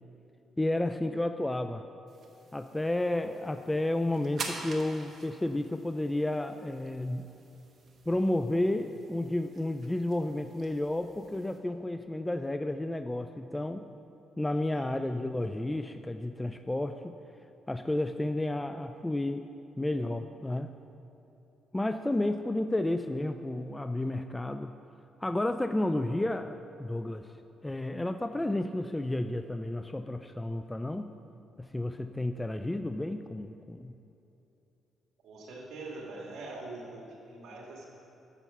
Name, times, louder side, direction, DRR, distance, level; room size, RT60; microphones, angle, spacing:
voice 1, 0.6-1.8 2.5-7.3 8.1-13.8 14.4-17.1 17.7-19.4 19.8-20.7 21.7-24.7 25.2-27.3 27.6-31.1 31.6-34.0, left 1 dB, 10° left, 8 dB, 0.3 m, -31 dB
sound 1, 2.1-11.6, right 4 dB, 55° right, 1.1 m, -47 dB
voice 2, 14.5-14.9 22.1-22.2 35.2-37.9, right 2 dB, 75° right, -2 dB, 1.9 m, -44 dB
9.0 x 7.0 x 5.6 m, 2.9 s
cardioid pair, 90°, 0 cm